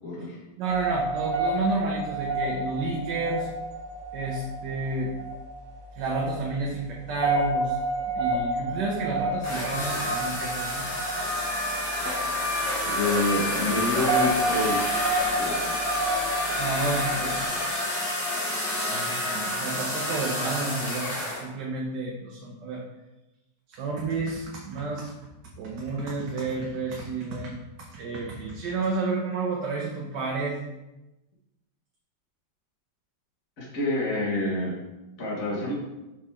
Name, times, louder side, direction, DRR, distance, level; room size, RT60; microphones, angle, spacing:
voice 1, 0.0-0.4 12.8-14.8 15.2-16.2 33.6-34.7 35.2-35.7, left 2 dB, 50° left, -5 dB, 2.0 m, -28 dB
voice 2, 0.6-3.5 4.1-5.1 5.9-7.8 8.1-10.9 16.6-18.0 18.9-22.8 23.7-25.1 25.6-30.6, right 3 dB, 80° right, -2 dB, 1.5 m, -31 dB
sound 1, 0.7-17.5, right 2 dB, 45° right, 0.3 m, -30 dB
sound 2, 9.4-21.4, left 1 dB, 65° left, 2.2 m, -29 dB
6.1 x 4.7 x 3.6 m, 1.0 s
omnidirectional pair, 1.9 m